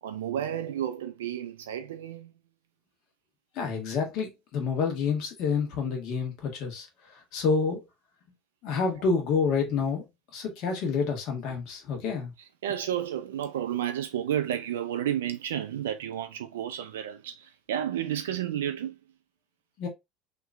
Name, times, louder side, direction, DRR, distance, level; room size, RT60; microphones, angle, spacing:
voice 1, 0.0-2.3 12.6-19.0, right 10 dB, 80° right, 0.4 m, -31 dB
voice 2, 3.5-6.9 7.3-7.8 8.6-10.0 10.3-12.3 19.8-19.9, left 5 dB, 60° left, 1.3 m, -28 dB
2.9 x 2.6 x 3.4 m
hypercardioid pair, 75°, 0 cm